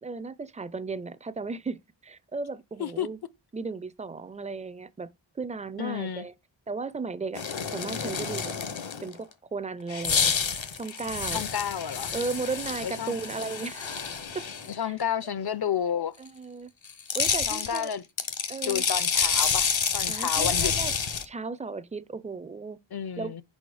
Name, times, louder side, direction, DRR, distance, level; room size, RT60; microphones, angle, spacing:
voice 1, 0.0-3.2 3.5-5.1 5.4-6.3 6.7-7.4 7.7-8.5 9.0-10.3 10.8-11.4 12.1-14.0 14.3-14.4 14.8-14.9 16.2-16.7 17.1-17.9 18.5-18.8 20.1-20.9 21.2-22.8 23.2-23.4, right 4 dB, 15° right, 0.4 m, -35 dB
voice 2, 5.8-6.3 11.3-12.1 12.8-13.2 14.7-16.1 17.5-18.0 18.6-20.7 22.9-23.4, left 8 dB, 55° left, 0.5 m, -31 dB
sound 1, 7.3-9.1 9.9-14.7 16.9-21.3, left 6 dB, 75° left, 0.9 m, -29 dB
5.1 x 4.3 x 4.7 m
wide cardioid pair, 55°, 46 cm